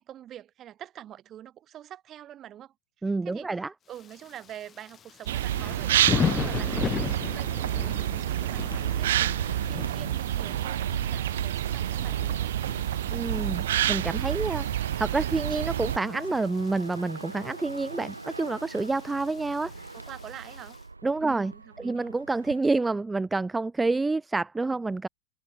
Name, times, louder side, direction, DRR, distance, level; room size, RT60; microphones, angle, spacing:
voice 1, 0.0-3.5 3.9-6.1 6.3-12.6 19.6-20.8 21.2-22.1, right 11 dB, 30° right, 7.6 m, -46 dB
voice 2, 3.0-3.7 13.1-19.7 21.0-21.5 21.8-25.1, right 3 dB, 10° right, 0.3 m, -28 dB
Thunder / Rain, 3.9-20.8, left 8 dB, 25° left, 1.2 m, -37 dB
sound 1, 5.3-16.0, right 12 dB, 60° right, 1.3 m, -28 dB
sound 2, 8.5-22.6, right 3 dB, 80° right, 2.3 m, -41 dB
figure-of-eight pair, 90°, 0 cm